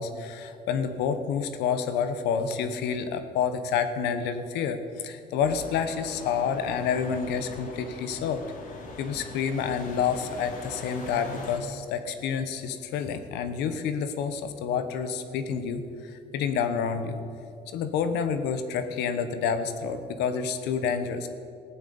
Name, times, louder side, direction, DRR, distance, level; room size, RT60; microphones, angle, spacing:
voice 1, 0.0-8.4 9.0-15.8 16.1-17.2 17.7-21.3, left 6 dB, 85° left, 9 dB, 1.2 m, -29 dB
sound 1, 5.4-11.6, left 3 dB, 55° left, 2.9 m, -42 dB
15.0 x 9.2 x 8.5 m, 2.4 s
cardioid pair, 110°, 17 cm